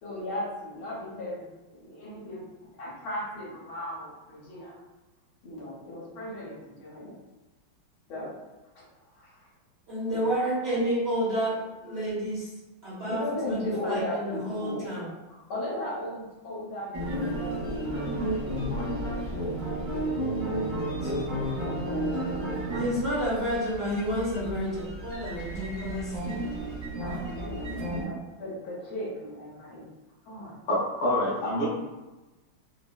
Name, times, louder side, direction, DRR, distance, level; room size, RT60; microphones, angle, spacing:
voice 1, 0.0-1.4 1.7-2.5 2.8-4.7 5.4-7.2 8.1-8.3 8.7-8.8 9.2-9.5 10.1-10.4 13.1-14.9 15.3-19.3 20.1-20.3 21.6-22.7 27.0-29.9 30.2-30.6, left 1 dB, 80° left, -6 dB, 1.8 m, -37 dB
voice 2, 9.9-11.6 11.8-12.5 12.8-15.1 21.0-21.3 22.0-22.1 22.7-26.1, equal, 85° right, -9 dB, 0.5 m, -30 dB
sound 1, 16.9-28.0, right 1 dB, 45° right, 0.7 m, -32 dB
voice 3, 30.7-31.7, left 1 dB, 60° left, -5 dB, 1.1 m, -26 dB
4.0 x 2.0 x 2.3 m, 1.1 s
omnidirectional pair, 2.2 m